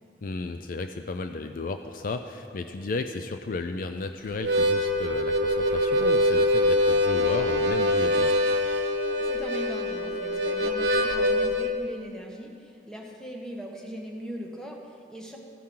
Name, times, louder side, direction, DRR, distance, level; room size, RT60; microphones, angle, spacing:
voice 1, 0.2-8.4, left 3 dB, 50° left, 7 dB, 0.4 m, -34 dB
Harmonica, 4.3-11.7, left 1 dB, 80° right, 0.9 m, -24 dB
voice 2, 9.2-15.4, equal, 5° left, 0 dB, 1.2 m, -39 dB
14.0 x 10.0 x 3.8 m, 2.3 s
head